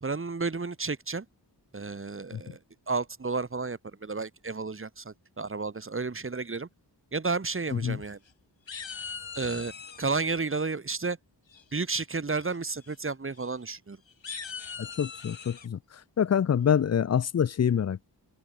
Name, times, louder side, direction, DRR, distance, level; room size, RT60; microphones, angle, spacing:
voice 1, 0.0-1.2 1.7-2.6 2.9-6.7 7.1-8.2 9.3-9.7 10.0-11.2 11.7-14.0, right 4 dB, 30° right, 1.3 m, -32 dB
sound 1, 7.7-8.3 8.7-10.1 11.5-11.9 12.3-12.6 12.8-12.9 13.3-13.5 14.1-15.7, left 6 dB, 85° left, 6.5 m, -41 dB
voice 2, 14.8-15.8 16.2-18.2, left 8 dB, 40° left, 0.5 m, -26 dB
open air
cardioid pair, 55°, 44 cm